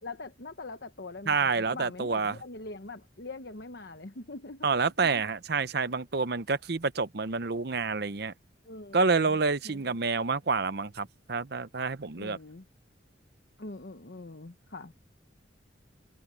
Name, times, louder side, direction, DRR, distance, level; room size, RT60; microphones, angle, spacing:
voice 1, 0.0-4.7 8.6-9.4 9.6-10.0 12.2-12.6 13.6-14.9, left 2 dB, 60° left, 1.1 m, -43 dB
voice 2, 1.3-2.4 4.6-8.3 8.9-12.4, right 4 dB, 55° right, 0.8 m, -28 dB
head